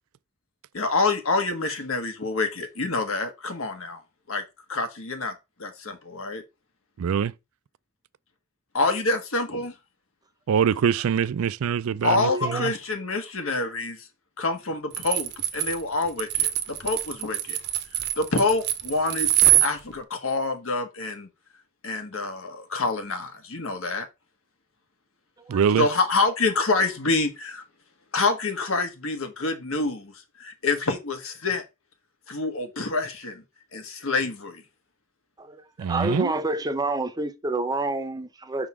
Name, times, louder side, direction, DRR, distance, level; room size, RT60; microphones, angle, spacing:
voice 1, 0.7-4.0 4.3-4.4 4.7-5.3 5.6-6.4 8.7-9.7 12.0-14.1 14.4-17.6 18.2-19.3 19.6-21.3 21.8-24.1 25.8-27.6 28.1-31.6 32.3-33.4 33.7-34.6, left 3 dB, 75° left, 1.5 m, -27 dB
voice 2, 7.0-7.3 10.5-12.7 25.5-25.9 35.8-36.3, right 7 dB, 80° right, 0.4 m, -24 dB
voice 3, 12.3-12.7 25.5-25.6 35.4-38.7, right 2 dB, 20° right, 0.7 m, -28 dB
sound 1, 14.9-19.7, right 12 dB, 55° right, 0.7 m, -23 dB
5.7 x 3.8 x 4.8 m
head